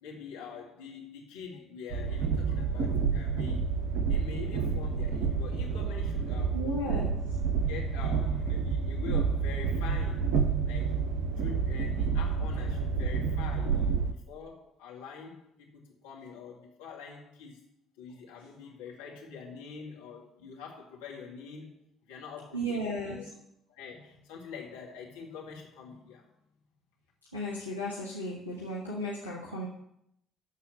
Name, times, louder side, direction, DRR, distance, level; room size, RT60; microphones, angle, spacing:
voice 1, 0.0-3.7 4.1-6.6 7.7-11.1 11.4-17.6 18.0-21.7 22.0-23.2 23.7-26.2, left 6 dB, 70° left, -2 dB, 2.1 m, -45 dB
Train, 1.9-14.1, right 5 dB, 60° right, 0.8 m, -29 dB
voice 2, 6.5-7.1 22.5-23.2 27.3-29.7, equal, 90° left, -7 dB, 1.3 m, -34 dB
12.5 x 4.2 x 6.7 m, 0.77 s
figure-of-eight pair, 50°, 0 cm